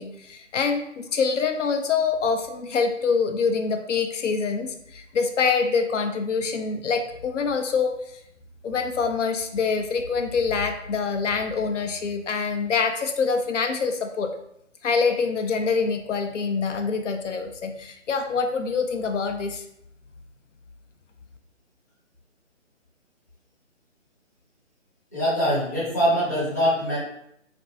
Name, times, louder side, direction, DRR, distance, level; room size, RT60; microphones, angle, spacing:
voice 1, 0.0-7.9 8.6-14.3 14.8-19.6, left 5 dB, 70° left, 5 dB, 0.5 m, -25 dB
voice 2, 25.1-27.0, equal, 15° left, -10 dB, 0.5 m, -23 dB
3.2 x 2.5 x 2.7 m, 0.76 s
hypercardioid pair, 155°, 38 cm